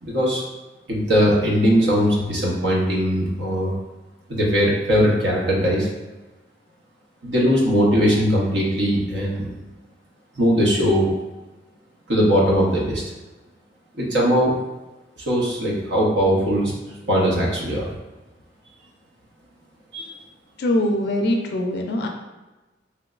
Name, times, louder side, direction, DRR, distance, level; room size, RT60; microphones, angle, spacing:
voice 1, 0.0-0.4 0.9-3.7 4.3-5.9 7.2-9.5 10.4-11.1 12.1-13.0 13.9-14.5 15.3-16.8 17.1-17.9 19.9-20.1, equal, 75° right, -3 dB, 0.8 m, -20 dB
voice 2, 20.6-22.1, left 1 dB, 60° left, 3 dB, 0.3 m, -22 dB
3.3 x 2.9 x 2.4 m, 1.1 s
head